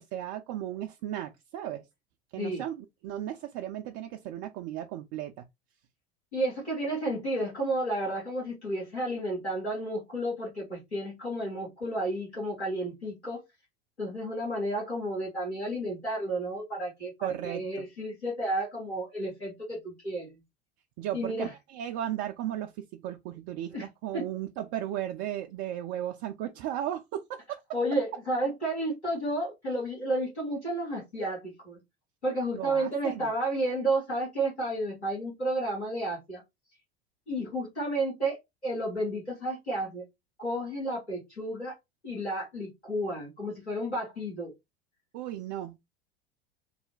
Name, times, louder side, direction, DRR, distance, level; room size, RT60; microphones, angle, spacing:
voice 1, 0.0-1.9 2.3-5.4 17.2-17.8 21.0-27.6 32.5-33.3 45.1-45.8, right 11 dB, 40° right, 0.4 m, -35 dB
voice 2, 6.3-13.4 14.0-20.3 21.1-21.5 23.7-23.9 24.1-24.2 27.7-31.8 32.2-36.4 37.3-40.0 40.4-41.7 42.0-44.5, right 1 dB, 85° left, 1.6 m, -32 dB
3.2 x 2.1 x 3.8 m
figure-of-eight pair, 75°, 32 cm